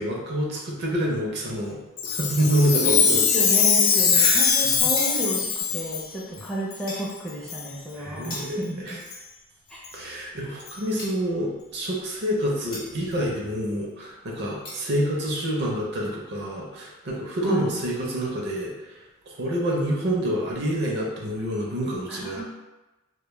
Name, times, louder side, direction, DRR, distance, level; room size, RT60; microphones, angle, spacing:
voice 1, 0.0-3.2 4.1-4.9 8.0-9.0 9.9-19.0 19.3-22.4, equal, 55° right, -2 dB, 0.5 m, -27 dB
Chime, 2.0-6.1 6.7-6.8 7.5-7.7 8.2-8.4 9.1-9.2 9.8-9.9 10.7-10.8, left 6 dB, 80° left, 0.4 m, -21 dB
voice 2, 2.7-5.5 5.7-9.0 9.7-9.8 17.4-17.8 22.1-22.4, equal, 5° left, -6 dB, 0.4 m, -32 dB
sound 1, 5.0-5.6 6.9-7.2 8.3-8.9 11.0-11.4 12.7-13.1 14.6-14.8, left 2 dB, 50° left, 0.7 m, -39 dB
2.2 x 2.0 x 3.1 m, 1.1 s
head